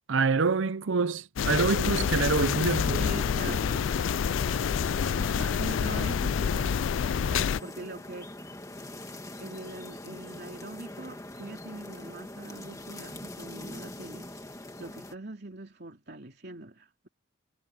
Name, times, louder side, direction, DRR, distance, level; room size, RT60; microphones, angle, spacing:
voice 1, 0.1-3.0 3.4-3.6 5.2-5.6, right 4 dB, 70° right, 0.6 m, -27 dB
sound 1, 1.4-7.6, left 7 dB, 70° left, 0.4 m, -27 dB
sound 2, 2.0-15.2, left 1 dB, 15° left, 1.9 m, -42 dB
voice 2, 3.0-4.2 5.5-6.8 7.3-8.3 9.4-17.1, right 2 dB, 50° right, 3.1 m, -42 dB
head